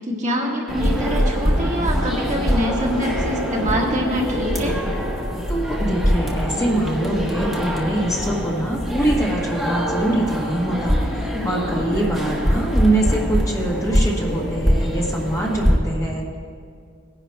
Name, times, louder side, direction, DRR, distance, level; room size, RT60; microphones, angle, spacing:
voice 1, 0.0-4.7, equal, 35° right, -2 dB, 1.5 m, -25 dB
sound 1, 0.7-15.8, equal, ahead, 1.3 m, -23 dB
voice 2, 5.5-16.4, right 1 dB, 15° left, -2 dB, 1.2 m, -24 dB
19.5 x 10.5 x 2.2 m, 2.2 s
head